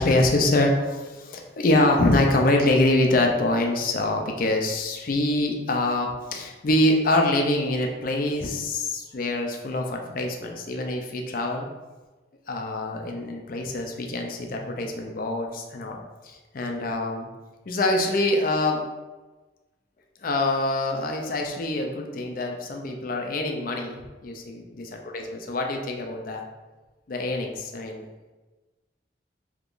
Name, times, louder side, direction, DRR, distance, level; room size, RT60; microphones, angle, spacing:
voice 1, 0.0-11.7 12.5-17.3 17.7-18.8 20.2-24.6 25.1-26.4 27.1-28.1, left 2 dB, 50° left, 2 dB, 0.4 m, -25 dB
3.6 x 2.9 x 2.4 m, 1.2 s
head